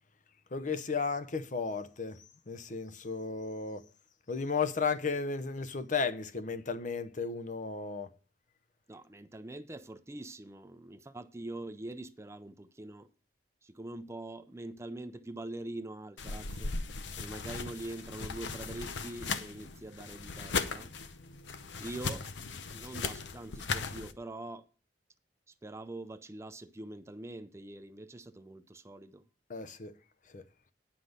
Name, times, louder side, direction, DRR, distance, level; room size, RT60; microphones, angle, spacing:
voice 1, 0.5-3.8 4.3-8.1 29.5-29.9 30.3-30.4, left 5 dB, 45° left, 0.7 m, -34 dB
voice 2, 8.9-13.1 13.6-16.7 17.2-20.9 21.8-22.2 22.7-24.7 25.5-29.2, right 2 dB, 15° right, 0.5 m, -44 dB
sound 1, 16.2-24.1, left 4 dB, 80° left, 0.8 m, -38 dB
9.4 x 5.9 x 6.5 m
head